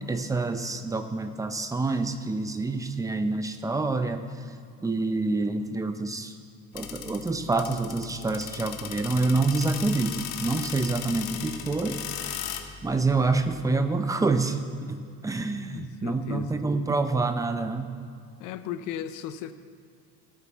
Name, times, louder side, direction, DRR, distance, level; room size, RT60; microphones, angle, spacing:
voice 1, 0.1-4.2 4.8-6.3 6.7-12.0 12.8-14.6 14.9-18.0, right 3 dB, 10° right, 8 dB, 0.5 m, -27 dB
sound 1, 6.7-13.6, left 9 dB, 80° left, 1.0 m, -37 dB
voice 2, 15.7-16.6 18.4-19.5, left 10 dB, 60° left, 11 dB, 0.7 m, -36 dB
18.0 x 8.6 x 3.5 m, 2.3 s
cardioid pair, 140°, 35 cm